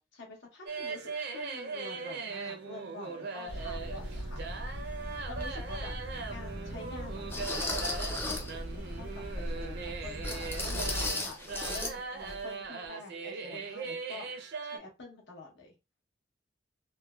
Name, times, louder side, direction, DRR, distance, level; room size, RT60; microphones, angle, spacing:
voice 1, 0.0-4.4 5.3-5.9 6.3-7.9 8.2-14.3 14.6-15.7, left 3 dB, 65° left, 1 dB, 0.8 m, -47 dB
sound 1, 0.7-14.8, right 4 dB, 60° right, 0.5 m, -40 dB
sound 2, 3.5-11.1, equal, 90° left, 1.2 m, -39 dB
sound 3, 5.4-5.5 6.2-6.3 7.3-8.6 10.2-12.0 12.2-12.4 12.8-12.9, left 2 dB, 10° left, 0.4 m, -35 dB
3.2 x 2.1 x 2.2 m, 0.26 s
head